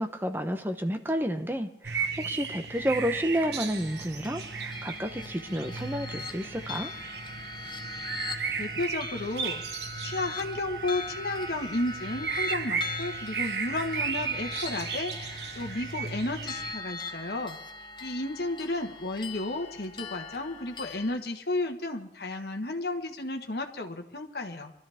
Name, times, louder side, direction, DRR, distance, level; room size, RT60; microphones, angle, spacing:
voice 1, 0.0-6.9, equal, 10° right, 7 dB, 0.9 m, -31 dB
sound 1, 1.8-16.7, right 5 dB, 70° right, 1.2 m, -35 dB
sound 2, 2.7-21.2, left 3 dB, 25° left, 1.0 m, -41 dB
voice 2, 8.6-9.6 10.0-17.6 18.0-24.7, left 2 dB, 60° left, 3 dB, 1.5 m, -33 dB
23.0 x 13.0 x 3.6 m, 0.79 s
head